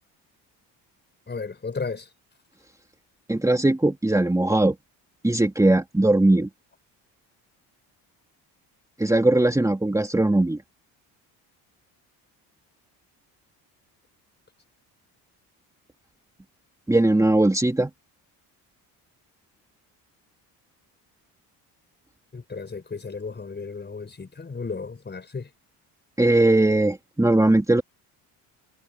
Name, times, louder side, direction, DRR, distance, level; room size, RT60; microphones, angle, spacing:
voice 1, 1.3-2.1 22.3-25.5, left 4 dB, 25° left, 5.3 m, -34 dB
voice 2, 3.3-4.7 5.2-6.5 9.0-10.6 16.9-17.9 26.2-27.8, right 2 dB, 10° right, 2.7 m, -19 dB
cardioid pair, 90°, 40 cm